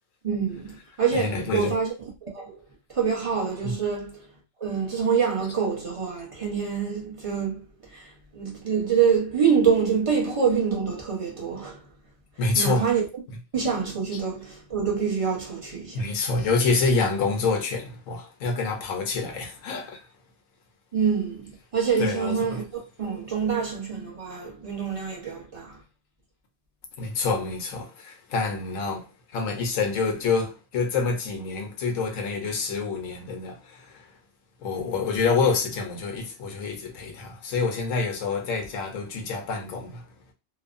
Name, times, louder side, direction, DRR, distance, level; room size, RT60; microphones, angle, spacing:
voice 1, 0.2-1.9 2.2-2.6 2.9-4.2 4.6-11.8 12.6-13.0 13.5-16.2 20.9-22.7 23.0-25.8, right 6 dB, 30° right, 0.8 m, -26 dB
voice 2, 1.1-1.8 3.6-3.8 12.4-13.0 13.3-13.4 14.1-14.2 15.9-20.1 22.0-22.6 27.0-34.1 34.6-40.1, left 4 dB, 75° left, 1.1 m, -27 dB
3.0 x 2.1 x 2.5 m
omnidirectional pair, 1.4 m